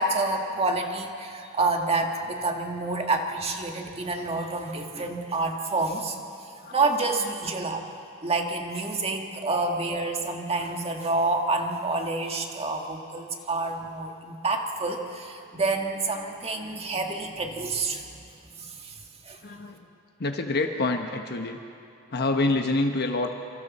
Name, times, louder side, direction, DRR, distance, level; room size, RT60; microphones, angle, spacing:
voice 1, 0.0-6.2 6.7-7.8 8.2-18.1 18.6-19.0 19.3-19.4, right 3 dB, 30° right, 2 dB, 1.7 m, -28 dB
voice 2, 19.4-19.8 20.2-21.6 22.1-23.3, left 2 dB, 50° left, 4 dB, 1.1 m, -26 dB
27.0 x 25.0 x 4.2 m, 2.5 s
head